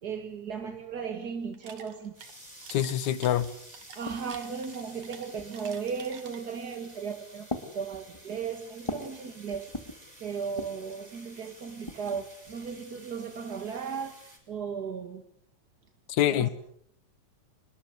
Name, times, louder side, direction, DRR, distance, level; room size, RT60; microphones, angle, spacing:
voice 1, 0.0-2.2 4.0-7.5 7.7-9.7 10.2-15.2 16.3-16.5, right 6 dB, 40° right, 1.8 m, -36 dB
sound 1, 1.4-6.7, right 7 dB, 75° right, 3.6 m, -49 dB
sound 2, 2.1-14.4, right 1 dB, 10° right, 5.7 m, -52 dB
voice 2, 2.7-3.5 16.1-16.5, left 11 dB, 70° left, 2.6 m, -25 dB
sound 3, 3.4-4.5 5.3-5.8 6.7-7.0 7.5-9.2 9.5-10.1 10.5-10.9 11.6-12.6, left 2 dB, 10° left, 2.0 m, -41 dB
26.5 x 22.0 x 8.1 m
omnidirectional pair, 3.5 m